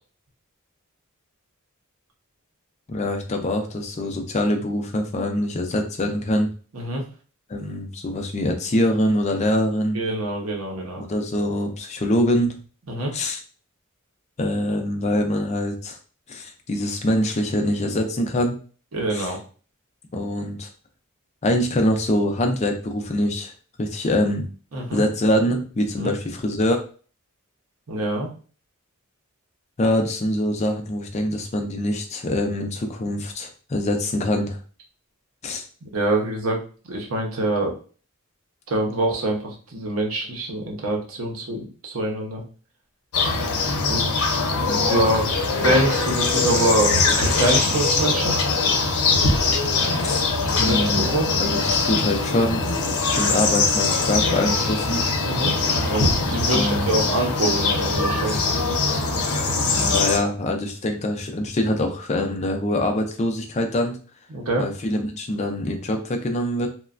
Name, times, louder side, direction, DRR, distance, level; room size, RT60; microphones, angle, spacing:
voice 1, 2.9-6.5 7.5-10.0 11.0-12.5 13.1-13.4 14.4-16.0 16.3-18.6 19.1-19.3 20.1-20.7 21.4-23.5 23.8-24.5 24.9-26.8 29.8-34.6 35.4-35.6 44.6-44.8 50.0-50.2 50.6-52.6 53.1-55.0 56.5-57.0 58.3-58.4 59.6-64.0 64.6-66.7, left 1 dB, 30° left, 4 dB, 0.4 m, -24 dB
voice 2, 6.7-7.0 9.9-11.0 12.9-13.1 18.9-19.4 24.7-25.1 26.0-26.1 27.9-28.3 35.8-36.6 36.8-37.7 38.7-42.4 43.8-44.4 44.9-45.3 45.6-48.4 50.6-51.3 55.2-55.5 55.9-58.3 64.3-64.6, right 1 dB, 75° right, 0 dB, 0.8 m, -25 dB
sound 1, 43.1-60.2, left 3 dB, 85° left, 0.7 m, -22 dB
3.0 x 2.2 x 2.4 m, 0.39 s
head